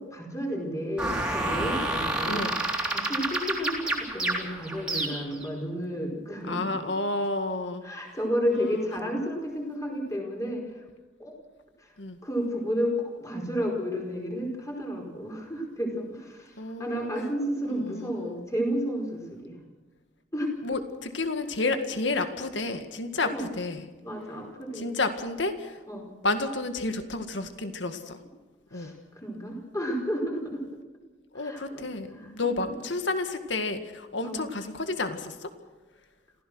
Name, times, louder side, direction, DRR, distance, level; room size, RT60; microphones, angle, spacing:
voice 1, 0.0-2.6 2.8-6.7 7.8-10.8 11.2-11.3 11.8-11.9 12.2-19.6 20.3-20.5 23.2-23.5 24.0-25.0 25.9-26.1 28.7-30.6 31.3-31.9 32.1-32.7 34.2-34.5, equal, 15° left, 0 dB, 4.8 m, -32 dB
sound 1, 1.0-5.5, right 2 dB, 5° right, 3.5 m, -29 dB
voice 2, 2.2-2.6 6.5-7.8 12.0-12.2 16.6-17.1 17.7-18.4 20.6-23.3 23.6-23.9 24.8-25.8 26.2-28.2 28.7-28.9 31.3-35.5, left 3 dB, 70° left, 8 dB, 1.9 m, -30 dB
27.0 x 16.0 x 6.3 m, 1.3 s
head